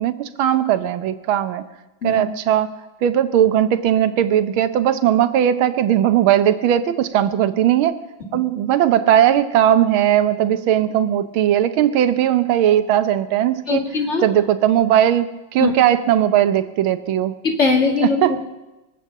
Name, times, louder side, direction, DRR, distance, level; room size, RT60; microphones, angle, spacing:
voice 1, 0.0-1.7 2.0-2.7 3.0-8.0 8.3-14.0 14.2-17.4 18.0-18.4, right 11 dB, 90° right, 12 dB, 1.6 m, -18 dB
voice 2, 13.7-14.2 15.6-15.7 17.4-18.2, left 4 dB, 35° left, 2 dB, 2.1 m, -19 dB
23.0 x 8.3 x 7.3 m, 1.0 s
omnidirectional pair, 2.2 m